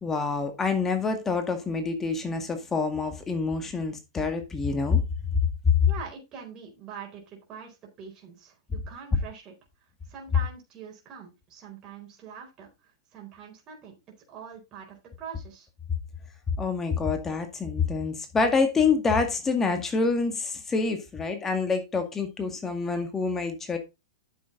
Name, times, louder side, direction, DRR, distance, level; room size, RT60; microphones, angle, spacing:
voice 1, 0.0-5.0 5.7-5.8 16.6-23.8, left 4 dB, 15° left, 2.0 m, -26 dB
voice 2, 5.9-9.5 10.1-14.0 14.3-15.7, right 7 dB, 30° right, 4.4 m, -44 dB
9.3 x 7.1 x 3.9 m
hypercardioid pair, 115°, 2 cm